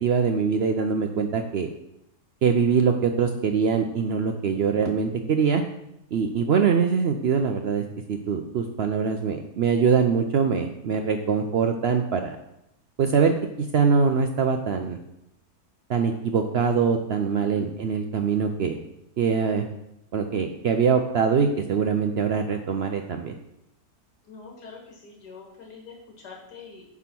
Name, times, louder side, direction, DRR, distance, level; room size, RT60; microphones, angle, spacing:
voice 1, 0.0-1.7 2.4-5.6 6.1-12.4 13.0-13.3 13.7-15.0 15.9-18.8 19.2-19.7 20.1-23.4, right 6 dB, 75° right, 5 dB, 0.5 m, -23 dB
voice 2, 24.2-26.8, left 4 dB, 85° left, -1 dB, 2.0 m, -45 dB
9.7 x 3.6 x 5.9 m, 0.82 s
omnidirectional pair, 1.7 m